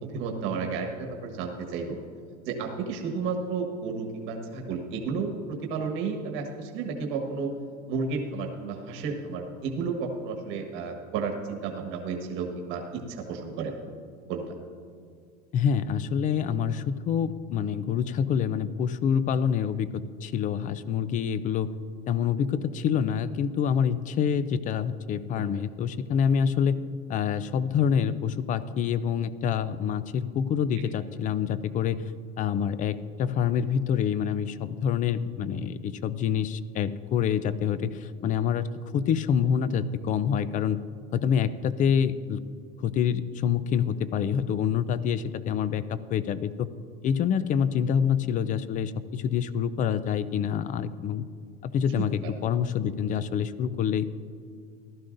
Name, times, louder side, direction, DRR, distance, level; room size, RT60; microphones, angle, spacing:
voice 1, 0.0-2.0 2.4-7.5 7.9-13.7 14.3-14.4 52.2-52.3, right 5 dB, 65° right, 2 dB, 1.5 m, -32 dB
voice 2, 15.5-21.7 22.1-26.8 27.1-32.1 32.4-40.8 41.1-42.4 42.8-46.7 47.0-51.2 51.6-54.1, left 8 dB, 40° left, 15 dB, 0.5 m, -26 dB
15.5 x 12.0 x 2.6 m, 2.2 s
supercardioid pair, 125°, 21 cm